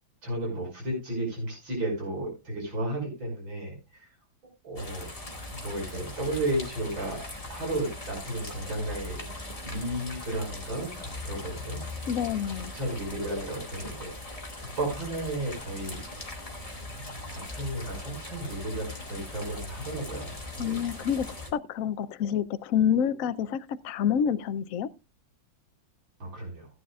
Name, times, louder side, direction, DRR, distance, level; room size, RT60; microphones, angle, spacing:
voice 1, 0.2-4.1 4.6-5.1 5.5-7.2 7.5-9.2 9.6-11.8 12.7-14.1 14.6-16.0 17.3-20.8 26.2-26.7, right 1 dB, 85° right, 6.6 m, -33 dB
sound 1, 4.8-21.5, left 2 dB, 20° left, 2.2 m, -40 dB
voice 2, 12.1-12.7 20.6-21.3 21.5-24.9, left 8 dB, 65° left, 0.9 m, -27 dB
16.5 x 9.4 x 2.4 m
omnidirectional pair, 2.1 m